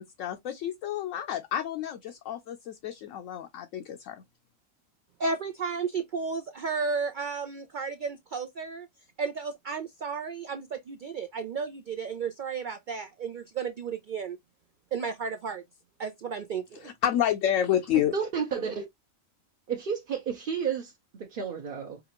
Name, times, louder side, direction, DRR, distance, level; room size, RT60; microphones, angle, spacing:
voice 1, 0.0-4.2 16.8-18.1, left 10 dB, 70° left, 0.9 m, -29 dB
voice 2, 5.2-8.9 9.2-14.4 14.9-15.6 16.0-16.9, right 5 dB, 85° right, 0.4 m, -33 dB
voice 3, 18.1-18.8 19.7-20.9 21.2-22.0, right 6 dB, 50° right, 0.8 m, -31 dB
4.9 x 2.4 x 2.9 m
omnidirectional pair, 1.4 m